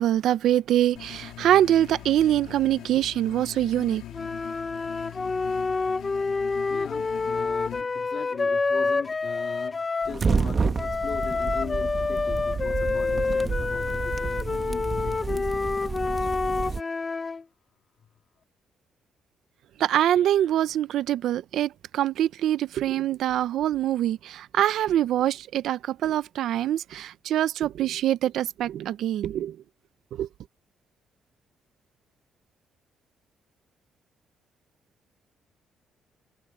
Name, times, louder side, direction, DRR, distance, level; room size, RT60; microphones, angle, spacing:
voice 1, 0.0-4.0 19.8-29.6 30.1-30.3, right 12 dB, 80° right, 0.6 m, -24 dB
sound 1, 0.9-7.8, left 13 dB, 85° left, 2.5 m, -42 dB
sound 2, 4.1-10.2 10.8-17.4, left 4 dB, 30° left, 0.9 m, -28 dB
voice 2, 6.7-15.5 16.1-16.6, left 8 dB, 60° left, 2.6 m, -39 dB
sound 3, 10.0-16.8, right 5 dB, 35° right, 1.3 m, -30 dB
cardioid pair, 90°, 0 cm